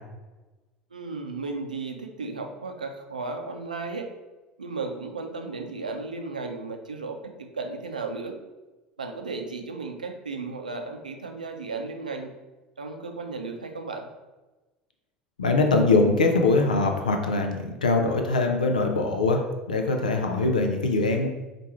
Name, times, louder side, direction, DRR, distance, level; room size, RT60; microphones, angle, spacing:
voice 1, 0.9-4.1 4.6-8.3 9.0-12.3 12.8-14.1, right 3 dB, 80° right, 4 dB, 0.5 m, -34 dB
voice 2, 15.4-17.5 17.8-19.4 19.7-21.3, left 3 dB, 80° left, 3 dB, 0.5 m, -22 dB
4.6 x 2.5 x 4.4 m, 1.1 s
figure-of-eight pair, 70°, 4 cm